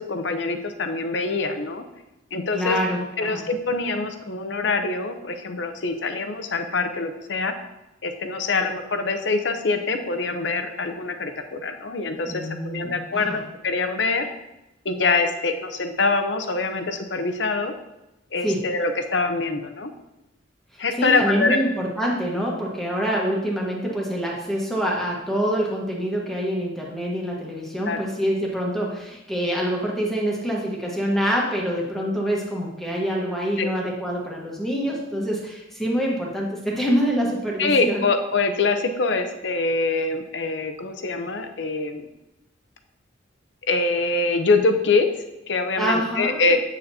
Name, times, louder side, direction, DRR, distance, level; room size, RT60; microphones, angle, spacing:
voice 1, 0.0-1.8 2.3-2.8 3.2-7.5 8.0-14.3 14.8-17.7 18.3-19.9 20.8-21.6 27.9-28.0 33.6-33.7 37.6-42.1 43.7-46.6, left 3 dB, 65° left, 7 dB, 0.7 m, -24 dB
voice 2, 2.5-3.4 12.3-13.4 18.4-18.7 20.7-38.1 45.8-46.5, equal, ahead, -3 dB, 1.2 m, -26 dB
8.3 x 6.5 x 2.8 m, 0.95 s
head